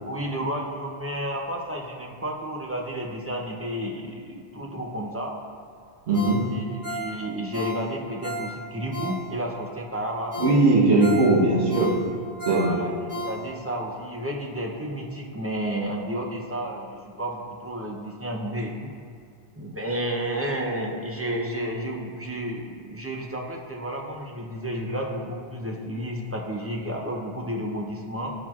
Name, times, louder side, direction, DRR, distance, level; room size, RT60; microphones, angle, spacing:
voice 1, 0.1-5.4 6.2-10.4 12.3-18.9 19.6-28.3, right 1 dB, 20° right, 0 dB, 0.4 m, -31 dB
Ringtone, 6.1-9.6 10.0-10.1 10.3-13.7 14.1-14.2, equal, 40° right, 1.8 m, -35 dB
voice 2, 6.1-6.4 10.4-11.9 12.4-12.8, right 2 dB, 85° right, -4 dB, 1.3 m, -19 dB
11.5 x 4.4 x 2.4 m, 2.3 s
omnidirectional pair, 1.1 m